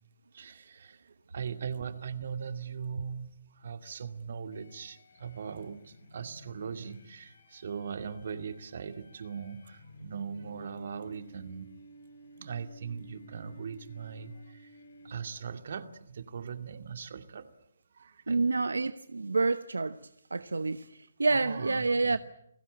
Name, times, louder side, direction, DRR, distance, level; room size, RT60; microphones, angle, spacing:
voice 1, 0.3-11.7 12.4-14.7 15.0-17.5 17.9-18.4 21.3-22.2, right 6 dB, 60° right, 2.3 m, -40 dB
sound 1, 4.5-15.6, equal, 60° left, 7.0 m, -54 dB
voice 2, 18.3-20.0 20.3-22.2, right 3 dB, 85° right, 1.0 m, -28 dB
29.5 x 18.5 x 8.7 m
figure-of-eight pair, 145°, 0 cm